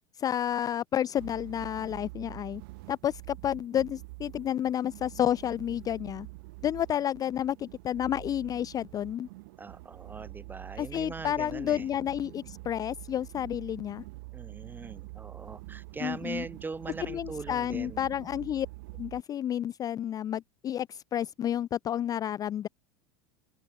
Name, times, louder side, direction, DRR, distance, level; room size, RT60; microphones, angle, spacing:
voice 1, 0.2-2.6 2.9-6.3 6.6-9.3 10.8-14.0 16.0-16.4 17.1-18.7 19.0-22.7, left 10 dB, 30° left, 0.4 m, -30 dB
sound 1, 1.2-19.2, right 24 dB, 60° right, 2.0 m, -46 dB
voice 2, 9.6-11.9 14.3-18.0, right 4 dB, 15° right, 1.5 m, -41 dB
open air
hypercardioid pair, 85°, 13 cm